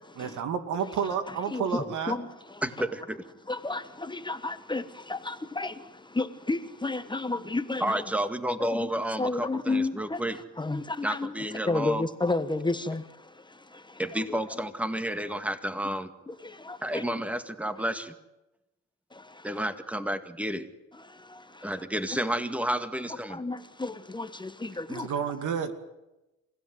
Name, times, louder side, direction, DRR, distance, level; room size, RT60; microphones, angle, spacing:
voice 1, 0.2-2.1 24.9-25.7, right 7 dB, 80° right, 2.5 m, -30 dB
voice 2, 1.0-2.9 3.5-8.0 8.6-8.9 9.2-14.6 16.3-17.0 19.1-19.7 20.9-22.2 23.3-25.1, left 2 dB, 15° left, 1.3 m, -33 dB
voice 3, 2.6-3.2 7.8-10.4 11.0-12.0 14.0-16.1 16.8-18.1 19.4-20.7 21.6-23.4, right 1 dB, 5° right, 2.0 m, -31 dB
28.5 x 16.5 x 9.5 m
cardioid pair, 90°, 30 cm